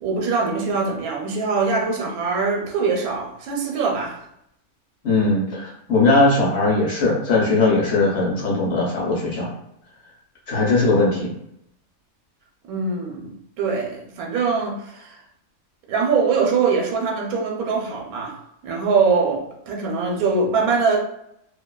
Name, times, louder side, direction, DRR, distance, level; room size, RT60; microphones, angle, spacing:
voice 1, 0.0-4.2 12.6-15.2 15.9-18.4 18.6-21.0, right 4 dB, 80° right, 0 dB, 1.0 m, -23 dB
voice 2, 5.0-9.5 10.5-11.3, left 3 dB, 60° left, -4 dB, 0.8 m, -19 dB
2.6 x 2.2 x 2.2 m, 0.76 s
omnidirectional pair, 1.5 m